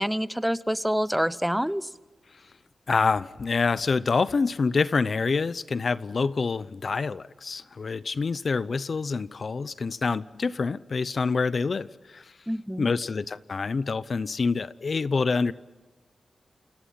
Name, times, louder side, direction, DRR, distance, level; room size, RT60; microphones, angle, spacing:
voice 1, 0.0-1.9 12.5-12.9, equal, 5° right, 0.8 m, -27 dB
voice 2, 2.9-12.3 12.8-15.5, left 4 dB, 55° left, 0.7 m, -26 dB
29.0 x 26.5 x 5.7 m
wide cardioid pair, 100°, 0 cm